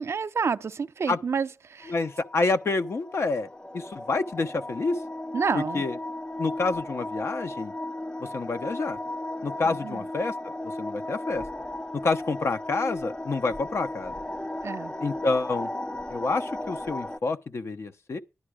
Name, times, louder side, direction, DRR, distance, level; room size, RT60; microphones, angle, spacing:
voice 1, 0.0-1.9 5.3-5.9 9.6-10.0 14.6-14.9, right 5 dB, 65° right, 0.6 m, -29 dB
sound 1, 1.8-17.2, left 1 dB, 20° left, 0.5 m, -36 dB
voice 2, 1.9-3.5 3.7-5.0 5.7-5.9 6.4-7.7 8.3-9.0 9.4-10.3 10.8-11.5 12.0-14.1 15.0-15.7 16.1-18.2, left 3 dB, 65° left, 0.9 m, -28 dB
11.0 x 10.0 x 5.0 m
cardioid pair, 60°, 5 cm